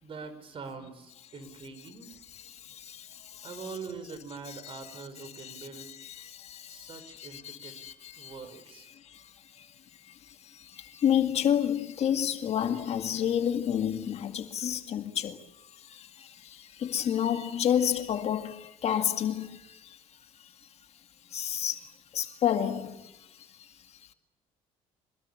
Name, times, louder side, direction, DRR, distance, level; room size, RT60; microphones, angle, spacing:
voice 1, 0.0-2.1 3.4-5.9 6.7-7.8 8.2-8.9, right 5 dB, 40° right, 5.5 m, -43 dB
voice 2, 2.5-3.5 4.5-4.8 5.4-8.3 9.0-9.7 10.1-15.4 15.8-20.0 20.4-20.5 21.3-21.9 22.1-23.5, left 9 dB, 50° left, 2.1 m, -31 dB
26.0 x 20.5 x 8.4 m
cardioid pair, 110°, 14 cm